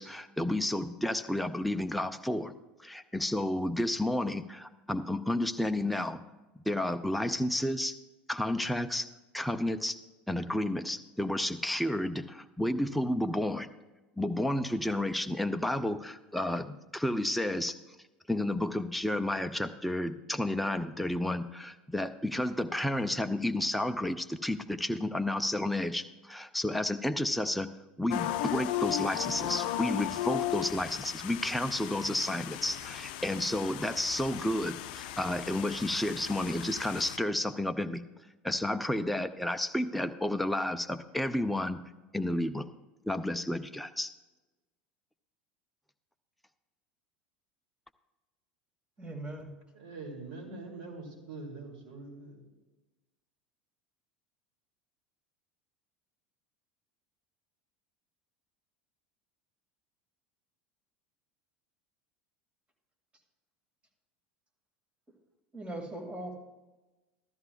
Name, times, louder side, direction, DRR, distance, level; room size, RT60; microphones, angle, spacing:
voice 1, 0.0-2.5 2.8-6.2 6.7-7.9 8.3-9.1 9.3-10.0 10.3-13.7 14.2-17.8 18.3-27.7 28.0-38.0 38.4-41.8 42.1-42.7 43.0-44.1, left 1 dB, ahead, 7 dB, 0.5 m, -31 dB
sound 1, 28.1-37.2, left 13 dB, 65° left, 0.5 m, -36 dB
voice 2, 49.0-49.6 65.5-66.4, right 1 dB, 20° right, 3 dB, 2.3 m, -40 dB
voice 3, 49.7-52.4, right 3 dB, 70° right, 1 dB, 2.8 m, -44 dB
14.5 x 13.0 x 2.3 m, 1.1 s
hypercardioid pair, 75°, 5 cm